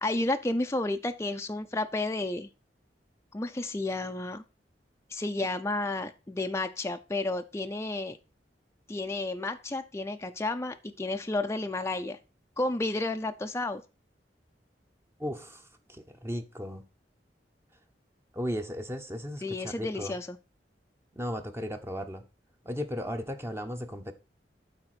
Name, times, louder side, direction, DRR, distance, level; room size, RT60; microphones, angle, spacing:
voice 1, 0.0-2.5 3.3-4.4 5.1-8.2 8.9-12.2 12.6-13.8 19.4-20.4, left 2 dB, 15° left, 0.5 m, -31 dB
voice 2, 15.2-16.8 18.3-20.2 21.2-22.2 22.6-24.1, equal, 15° right, 0.8 m, -36 dB
8.8 x 4.1 x 5.8 m
head